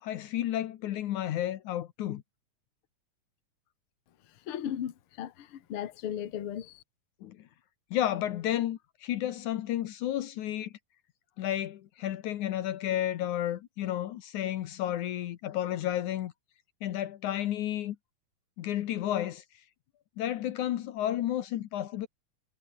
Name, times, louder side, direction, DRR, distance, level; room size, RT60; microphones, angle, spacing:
voice 1, 0.0-2.2 7.2-7.4 7.9-10.7 11.4-16.3 16.8-18.0 18.6-19.4 20.2-22.1, left 12 dB, 75° left, 2.4 m, -32 dB
voice 2, 4.5-6.8, left 10 dB, 50° left, 2.1 m, -36 dB
omnidirectional pair, 3.7 m